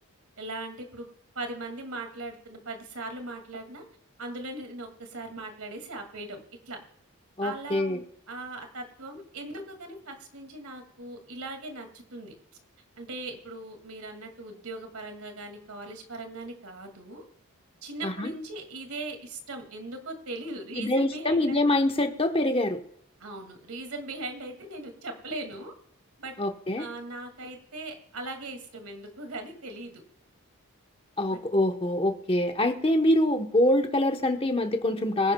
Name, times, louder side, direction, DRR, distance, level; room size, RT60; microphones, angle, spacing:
voice 1, 0.4-1.1 1.3-3.8 4.2-6.4 6.7-6.8 7.4-12.3 13.0-17.2 17.8-21.6 23.2-25.7 26.2-26.3 26.8-30.0 31.3-31.4, right 2 dB, 80° right, 5 dB, 2.3 m, -39 dB
voice 2, 7.4-8.0 18.0-18.3 20.8-22.8 26.4-26.8 31.2-35.3, left 1 dB, 25° left, 6 dB, 1.0 m, -25 dB
24.0 x 10.5 x 2.3 m, 0.70 s
head